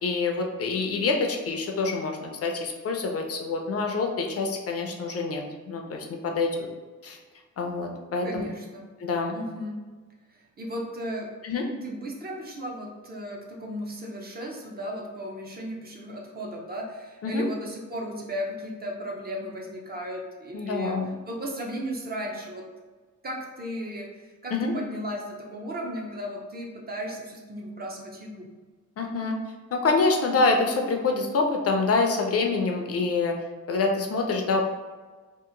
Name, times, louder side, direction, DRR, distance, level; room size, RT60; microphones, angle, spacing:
voice 1, 0.0-6.7 7.0-7.2 7.6-8.5 9.0-9.4 11.4-11.6 17.2-17.4 20.5-21.1 24.5-24.7 29.0-29.3 29.7-33.3 33.7-34.6, left 3 dB, 50° left, 2 dB, 0.4 m, -26 dB
voice 2, 8.2-8.8 9.3-9.8 10.3-11.3 11.8-21.0 21.3-22.6 23.2-28.5, equal, 30° right, -1 dB, 0.5 m, -35 dB
2.8 x 2.4 x 3.7 m, 1.3 s
wide cardioid pair, 165°, 32 cm